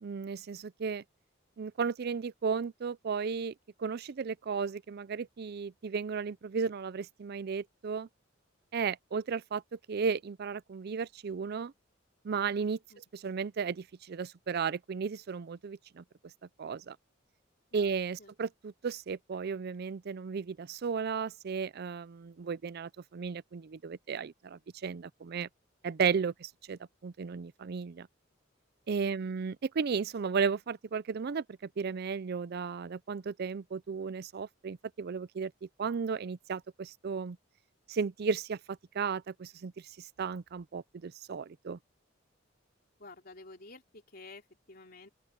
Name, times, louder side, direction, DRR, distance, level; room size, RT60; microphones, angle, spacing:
voice 1, 0.0-1.0 1.6-3.5 3.8-8.1 8.7-11.7 12.2-12.8 13.1-16.0 16.6-17.0 17.7-25.5 25.8-28.1 28.9-31.4 31.8-35.5 35.8-37.4 37.9-39.7 40.0-41.8, right 5 dB, 55° right, 0.4 m, -34 dB
voice 2, 29.0-29.4 43.0-45.1, left 3 dB, 50° left, 3.7 m, -51 dB
open air
head